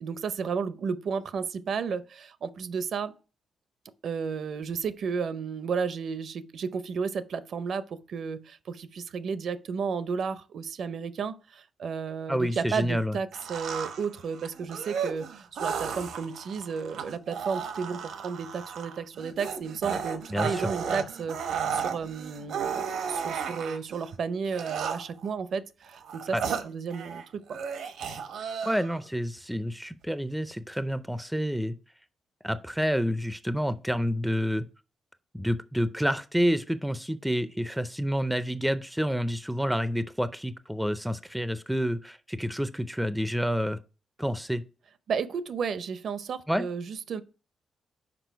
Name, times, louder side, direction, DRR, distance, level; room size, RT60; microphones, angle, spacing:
voice 1, 0.0-3.1 4.0-27.6 45.1-47.2, right 6 dB, 60° right, 0.6 m, -33 dB
voice 2, 12.3-13.2 20.3-20.7 26.3-26.4 28.6-31.8 32.4-34.7 35.3-43.8 44.2-44.6 46.5-46.6, equal, ahead, 0.4 m, -28 dB
sound 1, 13.3-24.0 24.5-25.3 25.8-27.2 27.5-29.0, right 7 dB, 90° right, 0.9 m, -34 dB
6.1 x 4.9 x 4.6 m
cardioid pair, 130°, 0 cm